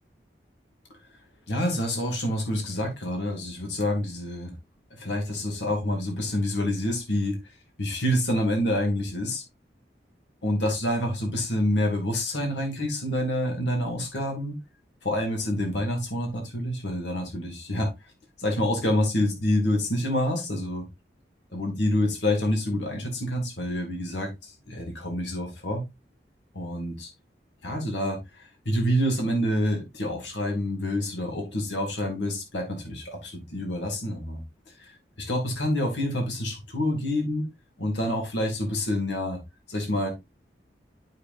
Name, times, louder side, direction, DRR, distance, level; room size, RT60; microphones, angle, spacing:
voice 1, 1.5-4.5 5.0-7.4 7.8-9.4 10.4-14.5 15.0-17.9 18.4-20.8 21.5-25.8 26.5-27.1 27.6-34.4 35.3-37.5 37.8-39.4 39.7-40.1, left 1 dB, 90° left, 2.4 m, -27 dB
8.7 x 6.6 x 2.6 m
head